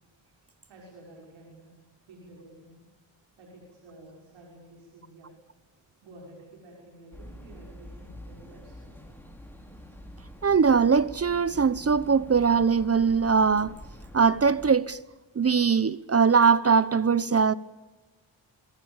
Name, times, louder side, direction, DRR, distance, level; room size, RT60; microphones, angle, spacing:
voice 1, 0.7-2.8 3.4-5.3 6.0-8.9, right 1 dB, 90° right, 6.3 m, -51 dB
sound 1, 7.1-14.7, equal, 5° left, 6.0 m, -46 dB
voice 2, 10.4-13.8 14.1-15.0 15.4-17.5, right 5 dB, 30° right, 1.0 m, -21 dB
27.0 x 23.0 x 7.3 m
cardioid pair, 65°, 44 cm